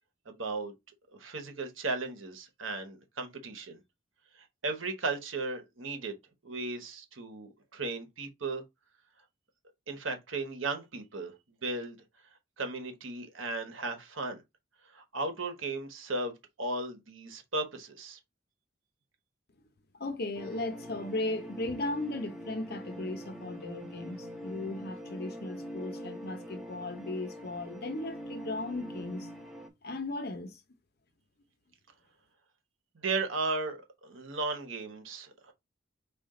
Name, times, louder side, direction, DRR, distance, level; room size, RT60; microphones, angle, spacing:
voice 1, 0.3-0.7 1.1-3.8 4.6-6.2 6.4-8.6 9.9-11.3 11.6-12.0 12.6-14.4 14.9-18.2 33.0-33.8 34.0-35.5, right 3 dB, 85° right, 1.2 m, -35 dB
voice 2, 19.9-29.3 29.8-30.6, left 2 dB, 55° left, 0.8 m, -36 dB
sound 1, 20.3-29.7, equal, ahead, 0.9 m, -43 dB
5.1 x 2.5 x 3.7 m
head